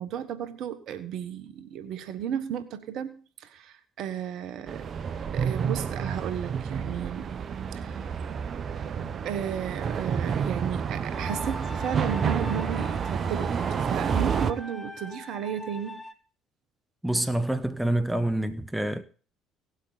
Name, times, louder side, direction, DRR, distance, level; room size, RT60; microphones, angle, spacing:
voice 1, 0.0-4.9 5.3-7.3 7.7-8.0 8.9-16.0, right 9 dB, 60° right, 1.3 m, -34 dB
sound 1, 4.7-14.5, right 6 dB, 45° right, 0.9 m, -29 dB
sound 2, 11.1-16.1, left 2 dB, 10° left, 1.6 m, -42 dB
voice 2, 17.0-19.0, right 1 dB, 5° right, 1.2 m, -27 dB
17.5 x 8.1 x 4.1 m
hypercardioid pair, 55°, 0 cm